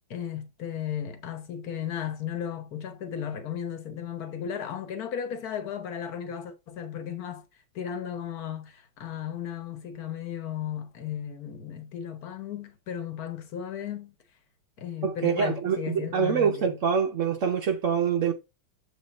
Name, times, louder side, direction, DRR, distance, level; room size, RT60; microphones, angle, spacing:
voice 1, 0.1-7.4 7.7-14.1 14.8-16.8, left 9 dB, 50° left, 1.5 m, -35 dB
voice 2, 15.0-18.3, right 7 dB, 75° right, 0.7 m, -25 dB
7.3 x 4.1 x 4.2 m
omnidirectional pair, 2.3 m